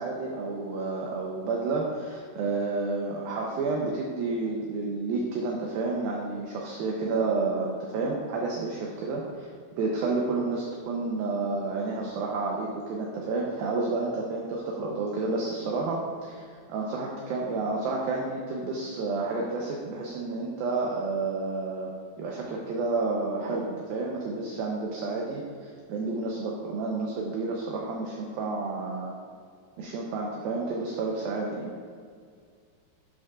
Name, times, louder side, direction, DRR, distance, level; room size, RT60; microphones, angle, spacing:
voice 1, 0.0-9.5 9.8-21.9 22.2-29.1 29.8-31.7, right 3 dB, 75° right, -2 dB, 2.3 m, -30 dB
12.5 x 7.2 x 2.5 m, 2.1 s
omnidirectional pair, 4.9 m